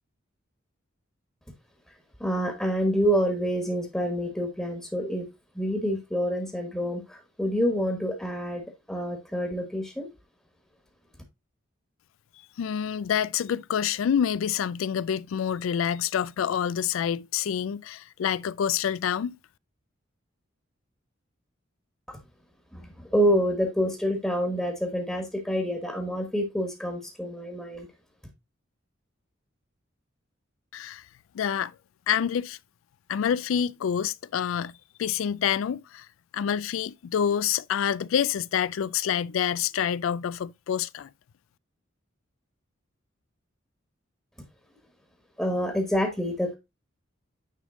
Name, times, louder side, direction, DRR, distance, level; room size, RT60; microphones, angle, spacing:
voice 1, 2.2-5.3 5.5-10.1 22.1-22.2 22.7-27.9 45.4-46.5, equal, 5° left, 1.3 m, -27 dB
voice 2, 12.6-19.4 30.7-31.0 31.3-31.7 32.1-32.6 33.1-36.1 36.3-41.1, left 8 dB, 85° left, 0.3 m, -27 dB
9.5 x 3.5 x 3.7 m
head